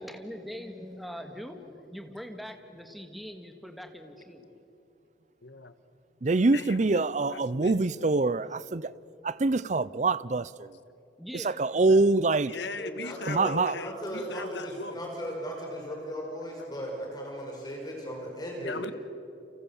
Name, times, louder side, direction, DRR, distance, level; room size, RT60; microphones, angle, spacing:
voice 1, 0.0-4.5 11.2-12.0, equal, ahead, 2.0 m, -42 dB
voice 2, 5.4-5.8 6.5-8.2 10.6-10.7 12.5-15.0 18.6-18.9, left 3 dB, 70° left, 1.5 m, -39 dB
voice 3, 6.2-8.9 9.2-10.8 11.3-12.5 13.3-13.8, right 3 dB, 40° right, 0.5 m, -25 dB
voice 4, 12.8-18.8, equal, 20° left, 5.2 m, -37 dB
29.5 x 27.5 x 7.2 m
head